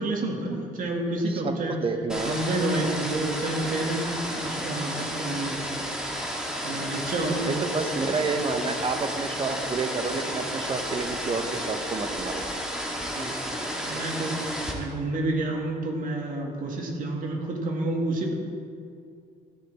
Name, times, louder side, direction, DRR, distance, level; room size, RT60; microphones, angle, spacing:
voice 1, 0.0-1.8 2.2-5.7 6.6-8.1 13.2-13.6 13.8-18.3, right 2 dB, 55° right, 1 dB, 2.1 m, -29 dB
voice 2, 1.3-2.4 7.5-12.4, right 4 dB, 35° right, 7 dB, 1.0 m, -29 dB
sound 1, 2.1-14.7, equal, 5° right, 1.9 m, -32 dB
14.0 x 10.0 x 3.5 m, 2.4 s
cardioid pair, 110°, 17 cm